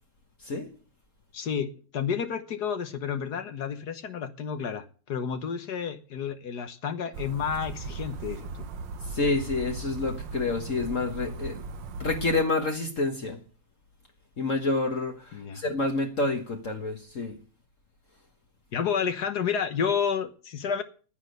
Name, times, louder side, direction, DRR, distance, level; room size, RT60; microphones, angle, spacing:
voice 1, 1.3-8.7 15.3-15.6 18.7-20.8, left 7 dB, 60° left, 1.6 m, -30 dB
sound 1, 7.1-12.4, right 3 dB, 80° right, 1.6 m, -37 dB
voice 2, 9.1-11.6 12.0-13.4 14.4-17.4, left 3 dB, 45° left, 1.7 m, -28 dB
10.0 x 9.6 x 7.9 m
omnidirectional pair, 2.0 m